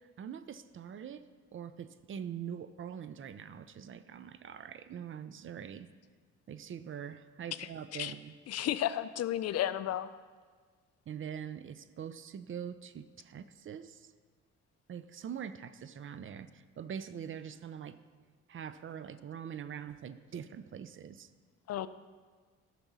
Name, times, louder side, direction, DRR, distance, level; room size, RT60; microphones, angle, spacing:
voice 1, 0.2-1.2 1.5-5.9 6.5-8.3 11.1-14.1 14.9-18.0 18.5-21.3, right 8 dB, 45° right, 12 dB, 0.5 m, -43 dB
voice 2, 7.6-8.1 8.5-10.2 21.7-21.9, left 12 dB, 55° left, 14 dB, 0.4 m, -33 dB
12.0 x 6.0 x 4.0 m, 1.5 s
cardioid pair, 90°, 30 cm